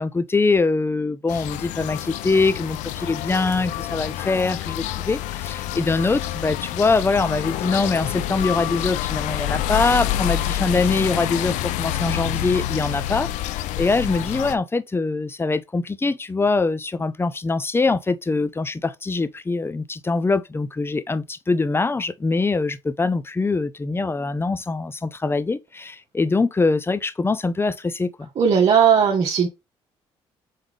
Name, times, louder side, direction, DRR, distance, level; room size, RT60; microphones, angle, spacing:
voice 1, 0.0-28.3, left 3 dB, 20° left, 0.5 m, -23 dB
sound 1, 1.3-14.6, left 13 dB, 80° left, 0.4 m, -27 dB
voice 2, 28.4-29.5, right 7 dB, 55° right, 1.1 m, -17 dB
3.7 x 3.6 x 3.4 m
supercardioid pair, 55°, 13 cm